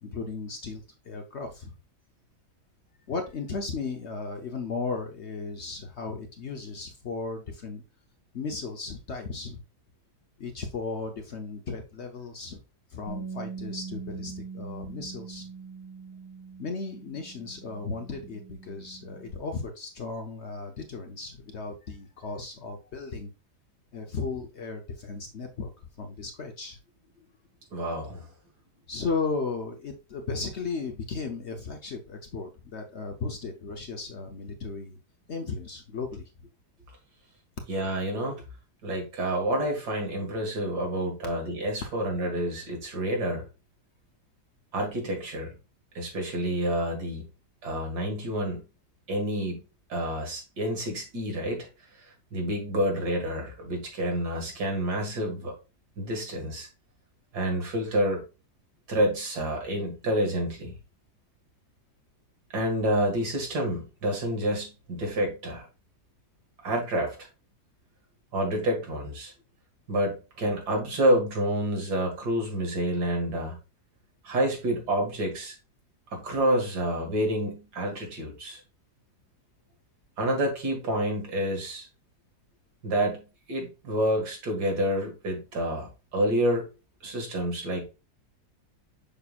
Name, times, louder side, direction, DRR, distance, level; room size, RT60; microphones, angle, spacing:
voice 1, 0.0-1.7 3.1-7.8 8.3-9.6 10.4-12.6 12.9-15.5 16.6-23.3 23.9-25.7 26.0-26.8 28.9-35.0 35.3-36.5, left 4 dB, 50° left, 4 dB, 0.9 m, -35 dB
Bass guitar, 13.1-19.3, right 5 dB, 15° right, 1.9 m, -42 dB
voice 2, 27.7-28.2 37.7-38.4 38.8-43.4 44.7-45.5 45.9-47.2 47.6-48.6 49.1-49.6 49.9-51.7 52.3-55.5 56.0-56.7 57.3-58.2 58.9-60.7 62.5-65.7 66.6-67.3 68.3-69.3 69.9-73.6 74.2-75.5 76.1-78.6 80.2-81.9 82.8-83.2 83.5-86.7 87.0-87.8, right 1 dB, 75° right, 2 dB, 2.5 m, -28 dB
6.8 x 5.8 x 2.4 m, 0.29 s
omnidirectional pair, 1.7 m